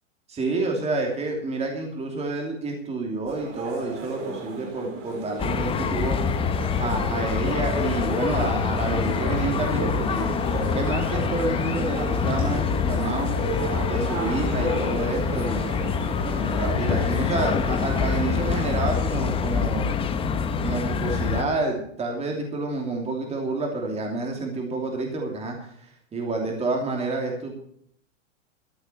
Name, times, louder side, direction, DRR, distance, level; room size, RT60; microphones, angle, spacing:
voice 1, 0.3-6.2 6.8-13.3 13.9-15.6 16.4-19.9 20.6-27.5, right 3 dB, 15° right, 2 dB, 2.9 m, -29 dB
sound 1, 3.3-19.0, right 4 dB, 35° right, 3.5 m, -35 dB
sound 2, 5.4-21.4, left 6 dB, 15° left, 0.8 m, -25 dB
13.5 x 8.0 x 6.9 m, 0.66 s
supercardioid pair, 140°, 38 cm